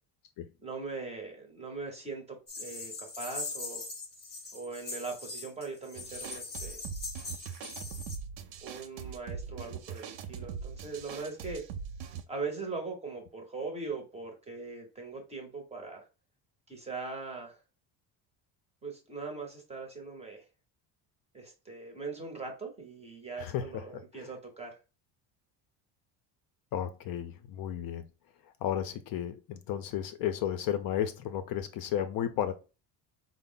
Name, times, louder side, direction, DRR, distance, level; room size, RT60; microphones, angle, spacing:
voice 1, 0.6-3.8 4.5-6.8 8.6-11.6 12.3-16.1 16.7-17.6 18.8-20.4 21.3-24.8, right 4 dB, 15° right, 0.6 m, -40 dB
sound 1, 2.5-8.2, left 3 dB, 25° left, 0.7 m, -41 dB
sound 2, 6.0-12.2, right 7 dB, 80° right, 0.6 m, -41 dB
voice 2, 23.4-24.3 26.7-28.0 28.6-32.5, left 10 dB, 55° left, 0.5 m, -33 dB
4.3 x 2.0 x 3.7 m
cardioid pair, 165°, 44 cm